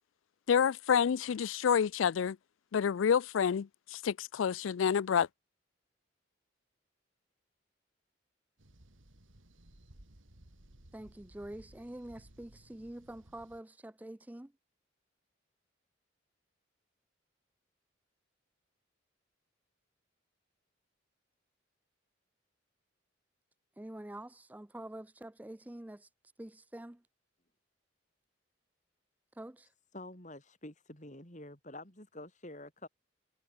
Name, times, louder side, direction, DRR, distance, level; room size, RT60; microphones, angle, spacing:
voice 1, 0.5-2.4 2.7-5.3, left 7 dB, 85° left, 0.4 m, -28 dB
sound 1, 8.6-13.6, right 1 dB, 85° right, 3.0 m, -59 dB
voice 2, 10.9-14.5 23.8-26.1 26.4-27.0 29.4-29.7, right 1 dB, 10° right, 0.4 m, -46 dB
voice 3, 29.9-32.9, left 1 dB, 40° left, 4.6 m, -48 dB
head